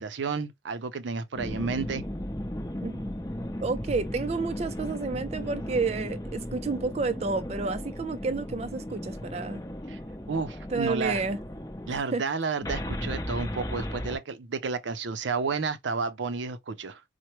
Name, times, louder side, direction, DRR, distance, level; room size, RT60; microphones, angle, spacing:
voice 1, 0.0-2.0 9.9-10.0 10.3-11.2 11.9-17.0, right 4 dB, 85° right, 0.5 m, -31 dB
sound 1, 1.4-12.0 12.6-14.2, equal, 20° left, 0.7 m, -36 dB
voice 2, 3.6-9.6 10.7-11.4 11.9-12.2, right 4 dB, 35° right, 0.4 m, -30 dB
4.4 x 2.1 x 3.0 m
head